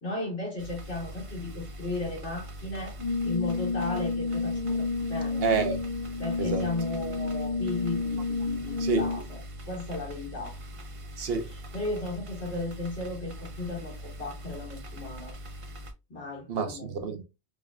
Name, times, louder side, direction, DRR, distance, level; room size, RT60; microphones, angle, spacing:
voice 1, 0.0-3.0 3.2-5.4 6.2-10.6 11.7-15.3 16.1-17.1, left 2 dB, 85° left, 2.3 m, -35 dB
sound 1, 0.6-15.9, equal, 45° right, 0.5 m, -42 dB
Brass instrument, 3.0-9.4, left 3 dB, 60° left, 1.1 m, -30 dB
voice 2, 5.4-5.8 6.4-6.7 8.8-9.1 11.2-11.5 16.5-17.2, right 5 dB, 60° right, 0.9 m, -28 dB
4.8 x 2.2 x 2.3 m
omnidirectional pair, 1.2 m